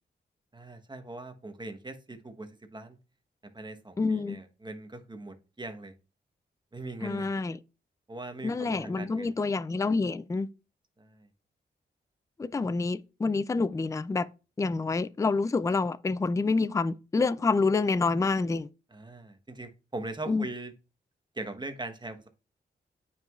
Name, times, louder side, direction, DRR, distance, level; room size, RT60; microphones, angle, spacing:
voice 1, 0.5-3.0 3.5-5.9 6.7-7.3 8.1-9.4 11.0-11.3 18.9-20.7 21.3-22.3, right 2 dB, 25° right, 1.1 m, -41 dB
voice 2, 4.0-4.4 7.0-7.6 8.4-10.5 12.4-14.3 14.6-18.7 20.3-20.4, left 3 dB, 15° left, 0.3 m, -27 dB
8.9 x 5.5 x 2.4 m
cardioid pair, 70°, 19 cm